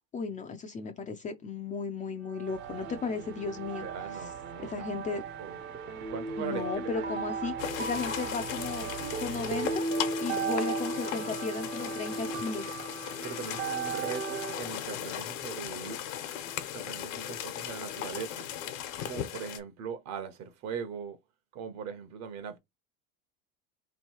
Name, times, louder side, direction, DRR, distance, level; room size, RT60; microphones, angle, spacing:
voice 1, 0.1-3.9 4.2-4.3 4.6-5.2 6.4-8.9 9.2-9.9 10.2-12.8, left 4 dB, 20° left, 0.4 m, -35 dB
sound 1, 2.3-14.6, right 4 dB, 30° right, 0.6 m, -36 dB
sound 2, 2.5-9.8, right 8 dB, 65° right, 1.2 m, -47 dB
voice 2, 3.8-5.6 6.1-7.1 13.2-16.0 16.7-18.5 19.1-21.2 21.5-22.6, right 7 dB, 45° right, 0.9 m, -40 dB
sound 3, 7.6-19.6, left 10 dB, 80° left, 1.1 m, -37 dB
3.1 x 2.7 x 4.5 m
supercardioid pair, 125°, 38 cm